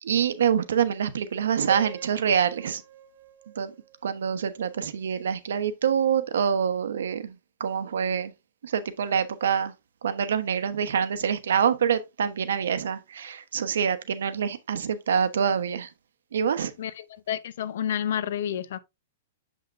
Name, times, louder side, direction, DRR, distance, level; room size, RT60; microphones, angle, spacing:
voice 1, 0.0-2.8 3.6-3.7 4.0-7.3 7.6-8.3 8.6-9.7 10.0-15.9 16.3-16.7, right 7 dB, 85° right, 1.0 m, -26 dB
Piano, 1.7-4.7, right 9 dB, 35° right, 1.1 m, -43 dB
voice 2, 16.8-18.8, left 9 dB, 55° left, 0.7 m, -30 dB
7.2 x 5.7 x 2.5 m
hypercardioid pair, 175°, 0 cm